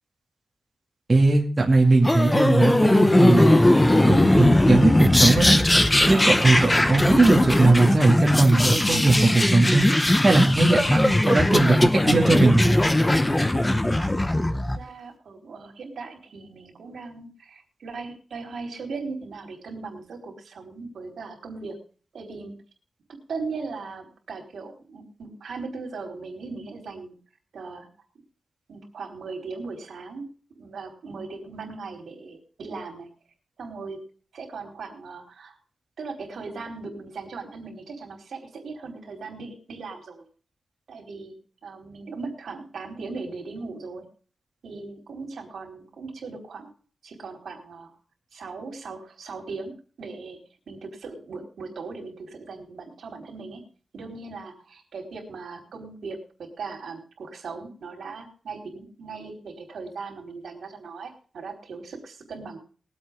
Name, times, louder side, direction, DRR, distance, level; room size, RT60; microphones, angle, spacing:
voice 1, 1.1-3.6 4.1-5.6 6.1-9.9 10.2-12.7, right 2 dB, 25° right, -1 dB, 2.3 m, -19 dB
sound 1, 2.0-14.8, left 1 dB, 10° left, 0.8 m, -19 dB
voice 2, 14.8-21.8 22.1-22.5 23.3-27.1 27.5-27.9 28.7-30.3 30.6-33.1 33.6-34.0 34.3-35.5 36.0-40.2 40.9-41.3 41.6-44.0 44.6-46.7 47.0-47.9 48.3-49.7 50.0-50.4 50.7-53.6 53.9-62.6, right 4 dB, 80° right, 2 dB, 3.8 m, -38 dB
21.5 x 8.1 x 3.6 m, 0.40 s
wide cardioid pair, 165°, 0 cm